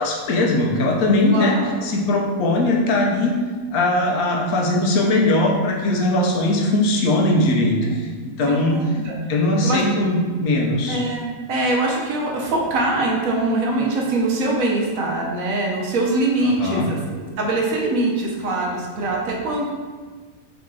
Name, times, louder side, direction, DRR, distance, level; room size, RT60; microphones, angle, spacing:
voice 1, 0.0-1.5 1.8-3.3 3.7-8.8 9.3-11.0 16.4-16.9, left 2 dB, 80° left, -1 dB, 1.2 m, -20 dB
voice 2, 1.3-1.7 7.8-7.9 8.5-9.1 9.6-9.8 10.9-19.7, right 2 dB, 70° right, -1 dB, 1.1 m, -23 dB
3.9 x 2.9 x 3.7 m, 1.4 s
omnidirectional pair, 1.5 m